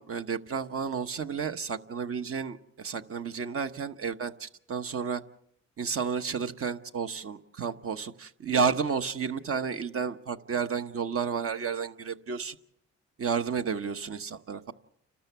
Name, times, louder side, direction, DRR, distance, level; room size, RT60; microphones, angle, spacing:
voice 1, 0.0-5.2 5.8-12.6 13.2-14.7, right 6 dB, 45° right, 9 dB, 1.2 m, -31 dB
30.0 x 13.0 x 8.2 m, 0.71 s
cardioid pair, 90°, 30 cm